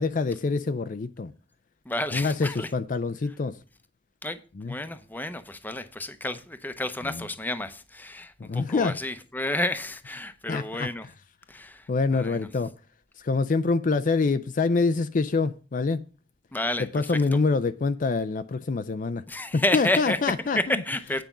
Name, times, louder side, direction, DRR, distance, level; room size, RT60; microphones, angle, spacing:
voice 1, 0.0-1.3 2.1-3.5 4.6-4.7 7.0-7.2 8.4-9.0 10.5-10.9 11.9-12.7 13.2-16.0 16.9-19.2 19.5-20.6, left 4 dB, 50° left, 0.5 m, -25 dB
voice 2, 1.8-2.7 4.2-4.4 4.7-11.1 11.5-12.5 16.5-17.1 19.3-20.2 20.6-21.2, left 1 dB, 10° left, 0.8 m, -30 dB
9.2 x 5.1 x 7.2 m
head